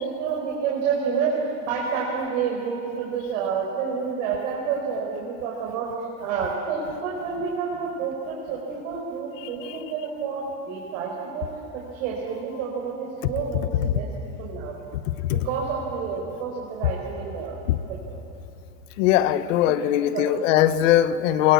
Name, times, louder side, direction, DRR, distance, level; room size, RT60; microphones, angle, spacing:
voice 1, 0.0-5.9 6.2-14.1 14.4-14.8 15.3-17.6 17.9-18.2 19.6-20.3, right 6 dB, 55° right, -3 dB, 5.1 m, -29 dB
voice 2, 19.0-21.5, left 12 dB, 55° left, 13 dB, 1.2 m, -20 dB
23.0 x 22.0 x 8.4 m, 2.7 s
supercardioid pair, 150°, 45 cm